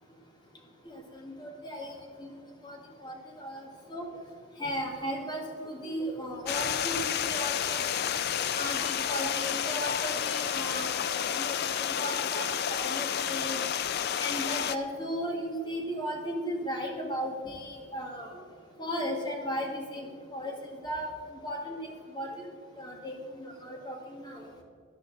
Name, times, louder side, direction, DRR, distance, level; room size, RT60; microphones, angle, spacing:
voice 1, 0.8-1.9 2.2-2.3 2.6-2.8 3.0-4.1 4.6-8.0 8.6-13.6 14.2-18.3 18.8-20.5 20.8-21.1 21.4-21.9 22.1-22.3 22.8-24.4, equal, 20° left, 0 dB, 1.6 m, -36 dB
Stream, 6.5-14.8, left 9 dB, 45° left, 0.4 m, -30 dB
13.5 x 10.5 x 3.8 m, 2.1 s
head